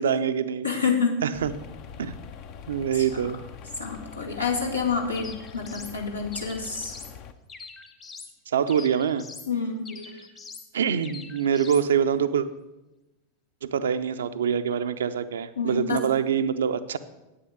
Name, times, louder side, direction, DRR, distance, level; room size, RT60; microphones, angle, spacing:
voice 1, 0.0-0.7 1.2-1.5 2.0-2.2 2.7-3.4 8.5-9.2 10.7-12.5 13.6-17.0, right 8 dB, 65° right, 11 dB, 0.6 m, -25 dB
voice 2, 0.6-1.2 2.9-3.3 3.8-6.9 9.5-10.1 15.6-16.0, left 5 dB, 85° left, -1 dB, 2.0 m, -28 dB
sound 1, 1.3-7.3, left 7 dB, 40° left, 0.7 m, -43 dB
sound 2, 5.1-6.0 6.3-7.1 7.5-8.3 8.7-9.5 9.8-10.7 11.0-11.9, left 4 dB, 25° left, 1.2 m, -44 dB
10.0 x 8.5 x 6.4 m, 1.0 s
figure-of-eight pair, 90°, 0 cm